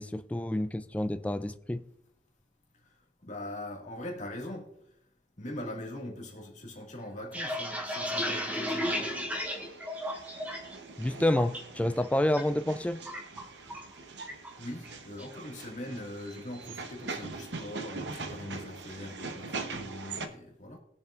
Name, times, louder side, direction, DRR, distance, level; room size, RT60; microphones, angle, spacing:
voice 1, 0.0-1.8 11.0-13.0, left 1 dB, 10° left, 0.3 m, -29 dB
voice 2, 2.8-4.8 5.4-9.1 14.6-20.8, left 1 dB, 40° left, 2.0 m, -42 dB
sound 1, 7.1-10.8 11.1-11.6 12.0-12.4 12.7-13.9 14.3-14.5 14.9-15.3, equal, 10° right, 1.4 m, -34 dB
sound 2, 8.8-20.3, right 3 dB, 70° right, 0.9 m, -42 dB
21.0 x 7.0 x 2.5 m
head